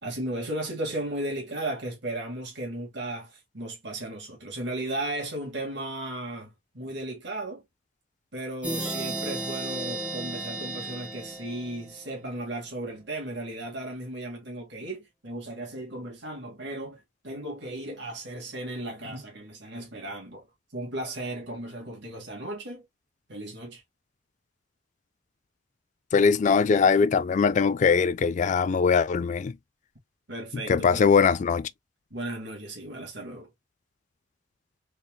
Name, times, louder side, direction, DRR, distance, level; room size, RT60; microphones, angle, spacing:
voice 1, 0.0-7.6 8.3-20.5 20.7-22.8 23.3-23.8 30.3-31.1 32.1-33.5, right 1 dB, 65° right, 1.9 m, -35 dB
sound 1, 8.6-12.2, right 2 dB, 10° right, 1.7 m, -34 dB
voice 2, 26.1-29.5 30.7-31.7, left 5 dB, 40° left, 0.3 m, -21 dB
4.0 x 3.6 x 2.3 m
head